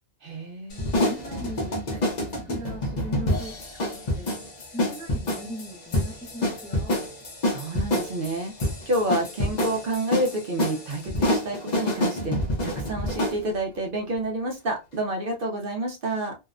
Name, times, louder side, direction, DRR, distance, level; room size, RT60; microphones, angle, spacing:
voice 1, 0.2-0.9 7.5-16.4, right 1 dB, 60° right, 0.7 m, -29 dB
sound 1, 0.7-13.4, left 1 dB, 45° left, 0.7 m, -27 dB
voice 2, 1.0-4.4 4.7-7.0, right 1 dB, 10° left, 0.4 m, -40 dB
2.7 x 2.1 x 2.4 m
omnidirectional pair, 1.2 m